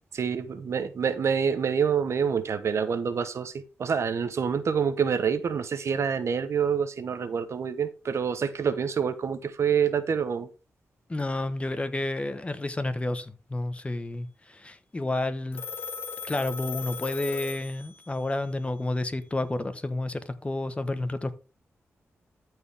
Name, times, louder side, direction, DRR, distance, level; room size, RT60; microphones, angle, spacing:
voice 1, 0.1-3.5 3.8-10.5, right 7 dB, 65° right, 1.0 m, -27 dB
voice 2, 11.1-15.6 16.3-21.3, left 2 dB, 25° left, 1.1 m, -30 dB
Telephone, 15.5-18.3, left 5 dB, 50° left, 2.9 m, -38 dB
14.0 x 4.7 x 3.5 m
cardioid pair, 70°, 5 cm